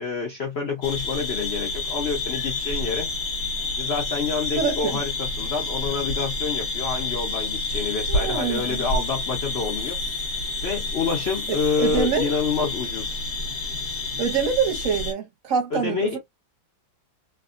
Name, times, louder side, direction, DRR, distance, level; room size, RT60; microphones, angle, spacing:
voice 1, 0.0-3.1 3.8-10.0 10.6-13.1 15.7-16.2, left 5 dB, 90° left, 0.5 m, -27 dB
sound 1, 0.8-15.1, left 3 dB, 45° left, 1.0 m, -29 dB
voice 2, 4.6-5.0 8.1-8.9 11.5-12.3 14.2-16.2, right 6 dB, 60° right, 0.9 m, -25 dB
3.4 x 2.0 x 2.4 m
omnidirectional pair, 2.1 m